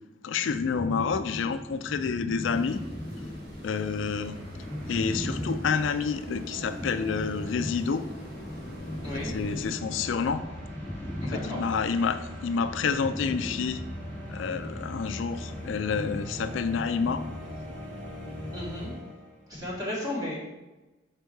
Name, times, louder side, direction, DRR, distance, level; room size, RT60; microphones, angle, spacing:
voice 1, 0.2-2.8 3.6-4.4 4.9-8.1 9.2-10.5 11.2-13.8 14.3-17.2, left 5 dB, 75° left, 11 dB, 0.4 m, -29 dB
sound 1, 0.5-18.7, left 1 dB, 10° left, 0.4 m, -39 dB
sound 2, 2.4-9.7, equal, 50° right, 1.2 m, -49 dB
sound 3, 2.6-19.5, equal, 70° right, 2.4 m, -42 dB
voice 2, 9.0-9.3 11.2-11.6 18.5-18.9 19.5-20.4, left 1 dB, 20° right, -6 dB, 2.3 m, -34 dB
6.7 x 4.5 x 4.5 m, 1.1 s
head